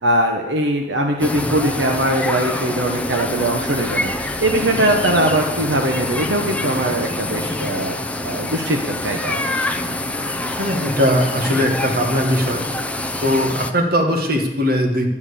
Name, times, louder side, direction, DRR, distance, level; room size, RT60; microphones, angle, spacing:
voice 1, 0.0-7.9 8.2-9.4, right 1 dB, 80° right, 3 dB, 1.2 m, -21 dB
sound 1, 1.2-13.7, left 1 dB, 10° left, 0.8 m, -25 dB
voice 2, 10.6-12.7 13.2-15.1, equal, 60° right, 3 dB, 2.0 m, -19 dB
11.0 x 9.9 x 6.9 m, 0.94 s
head